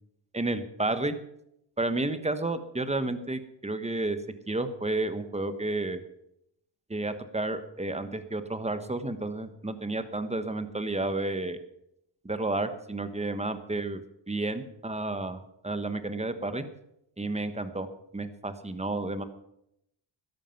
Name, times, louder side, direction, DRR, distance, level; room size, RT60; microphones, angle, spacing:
voice 1, 0.3-1.1 1.8-4.2 4.5-6.0 6.9-11.6 12.2-14.0 14.3-16.6 17.2-17.9 18.1-19.2, right 2 dB, 15° right, 10 dB, 1.3 m, -31 dB
13.0 x 11.0 x 5.9 m, 0.78 s
wide cardioid pair, 110°, 46 cm